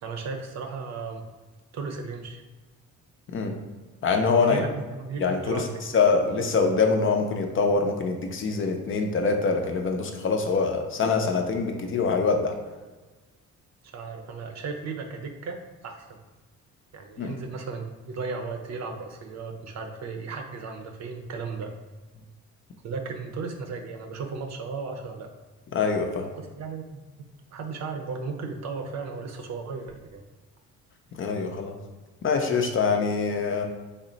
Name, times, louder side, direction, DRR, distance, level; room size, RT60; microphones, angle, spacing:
voice 1, 0.0-1.3 1.7-2.4 4.4-5.8 13.9-16.2 16.9-21.7 22.8-25.3 26.6-27.0 27.5-30.2, right 4 dB, 60° right, 4 dB, 0.6 m, -35 dB
voice 2, 4.0-4.6 5.2-5.6 5.9-12.5 17.2-17.4 25.7-26.3 31.2-31.7 32.2-33.7, left 4 dB, 45° left, 4 dB, 0.5 m, -24 dB
3.5 x 2.1 x 3.8 m, 1.3 s
cardioid pair, 90°, 30 cm